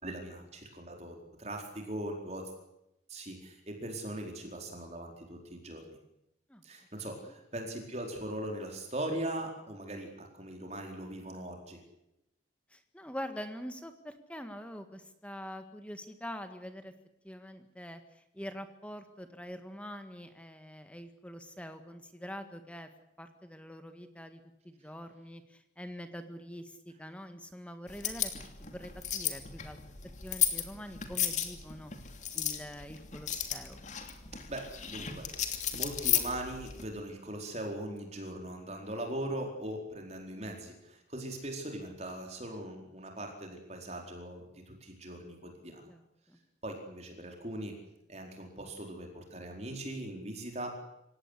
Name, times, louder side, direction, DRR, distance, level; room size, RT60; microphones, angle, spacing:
voice 1, 0.0-2.4 3.1-5.8 6.6-11.8 34.5-45.9 46.6-47.7 48.1-50.7, right 1 dB, 35° right, 2 dB, 4.4 m, -40 dB
voice 2, 12.7-16.9 17.2-22.9 23.2-28.3 28.7-29.8 30.2-31.9 32.3-33.8 45.9-46.0 46.3-46.4, equal, 5° left, 8 dB, 1.8 m, -45 dB
sound 1, 27.9-36.8, left 9 dB, 40° left, 2.9 m, -34 dB
27.0 x 17.0 x 9.9 m, 0.84 s
head